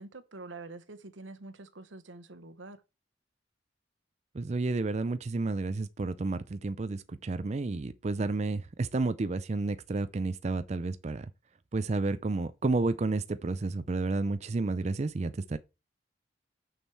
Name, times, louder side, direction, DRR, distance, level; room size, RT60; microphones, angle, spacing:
voice 1, 0.0-2.8, right 3 dB, 90° right, 1.1 m, -46 dB
voice 2, 4.3-11.3 11.7-15.6, right 3 dB, 35° right, 0.4 m, -31 dB
6.6 x 6.3 x 4.3 m
head